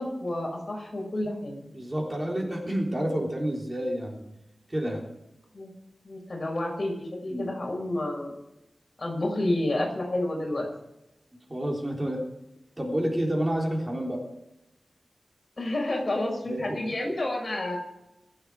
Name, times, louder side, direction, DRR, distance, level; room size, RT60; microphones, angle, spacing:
voice 1, 0.0-1.6 5.5-5.7 6.0-8.4 9.0-10.7 15.6-17.8, left 1 dB, 40° left, -1 dB, 6.2 m, -30 dB
voice 2, 1.7-4.2 4.7-5.0 7.3-7.5 11.5-12.2 12.8-14.2 16.5-16.8, right 1 dB, 25° right, -1 dB, 3.7 m, -29 dB
25.0 x 8.9 x 4.9 m, 0.88 s
wide cardioid pair, 105°, 0 cm